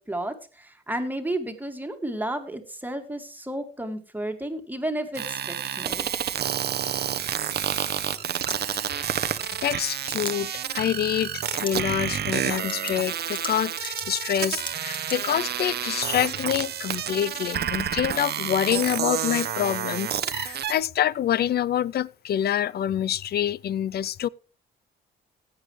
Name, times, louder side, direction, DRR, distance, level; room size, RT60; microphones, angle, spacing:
voice 1, 0.0-6.1, right 1 dB, 10° right, 1.9 m, -32 dB
sound 1, 5.1-20.8, right 9 dB, 55° right, 0.8 m, -29 dB
sound 2, 8.2-9.1 10.1-10.3 11.4-11.8 12.2-12.3 12.7-15.2, left 2 dB, 25° left, 1.8 m, -38 dB
voice 2, 9.0-24.3, left 10 dB, 55° left, 0.5 m, -27 dB
16.0 x 9.2 x 3.2 m
cardioid pair, 90°, 20 cm